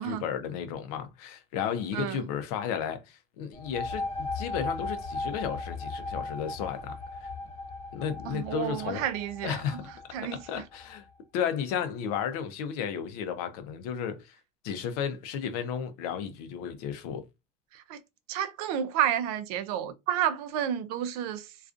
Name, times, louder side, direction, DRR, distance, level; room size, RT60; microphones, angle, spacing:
voice 1, 0.1-7.3 7.9-9.0 9.4-9.8 10.2-11.0 11.3-14.4 14.6-17.3, left 8 dB, 85° left, 0.5 m, -33 dB
sound 1, 3.5-11.0, left 3 dB, 35° left, 1.1 m, -37 dB
voice 2, 8.3-9.6 10.1-10.6 17.7-18.0 18.3-21.5, right 10 dB, 85° right, 0.4 m, -30 dB
2.4 x 2.3 x 2.4 m
supercardioid pair, 95°, 19 cm